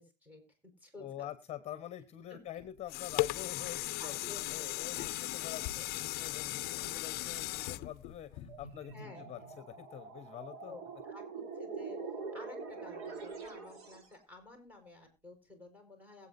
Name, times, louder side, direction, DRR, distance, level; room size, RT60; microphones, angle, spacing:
voice 1, 0.0-1.3 2.3-2.4 2.9-3.0 3.8-5.2 5.8-5.9 6.9-7.1 8.9-9.3 10.6-16.3, left 3 dB, 10° right, 4 dB, 5.5 m, -53 dB
voice 2, 1.0-4.2 4.5-10.7, left 11 dB, 30° left, 13 dB, 1.2 m, -46 dB
sound 1, 2.6-8.9 9.4-9.5, left 19 dB, 50° left, 0.6 m, -37 dB
sound 2, 8.4-14.1, right 4 dB, 55° right, 4.3 m, -44 dB
22.0 x 8.5 x 2.7 m, 0.28 s
supercardioid pair, 120°, 20 cm